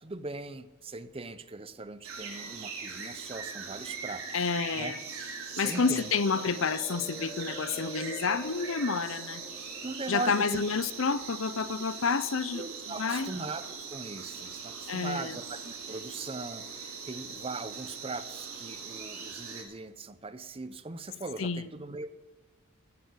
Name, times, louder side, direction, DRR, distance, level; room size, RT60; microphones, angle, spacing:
voice 1, 0.0-4.5 4.8-4.9 5.6-6.1 9.8-10.6 12.5-22.2, right 3 dB, 25° right, 13 dB, 0.6 m, -40 dB
sound 1, 2.0-19.6, right 5 dB, 80° right, 3.5 m, -41 dB
voice 2, 4.3-5.0 5.6-9.4 10.1-13.3 14.9-15.4 21.4-21.7, left 5 dB, 65° left, 16 dB, 0.7 m, -29 dB
sound 2, 5.7-11.8 12.9-13.2, left 1 dB, 20° left, 1.5 m, -47 dB
14.5 x 9.2 x 8.2 m, 1.2 s
head